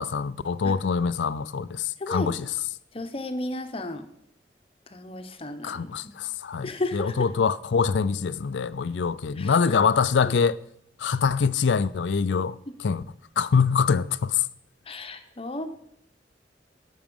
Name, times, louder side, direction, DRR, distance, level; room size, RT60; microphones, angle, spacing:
voice 1, 0.0-2.5 5.6-10.6 11.0-13.0 13.4-14.5, left 5 dB, 85° left, 0.4 m, -24 dB
voice 2, 2.0-2.3 2.9-4.1 4.9-6.1 6.6-7.3 9.4-9.8 14.9-15.7, left 2 dB, 35° left, 0.9 m, -33 dB
13.5 x 6.1 x 5.4 m
head